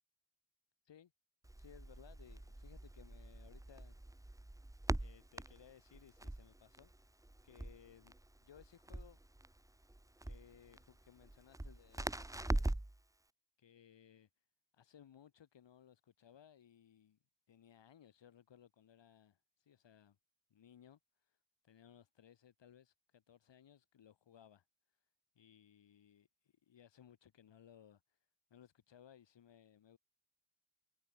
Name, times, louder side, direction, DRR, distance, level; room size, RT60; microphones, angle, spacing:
Crackle, 1.4-13.0, right 1 dB, 5° right, 1.6 m, -43 dB
voice 1, 1.6-4.4 4.9-8.2 8.4-9.2 10.2-12.8 13.6-14.5 14.7-17.2 17.5-20.2 20.5-25.1 25.3-28.2 28.5-30.0, left 9 dB, 60° left, 6.1 m, -63 dB
cardioid pair, 100°, 50 cm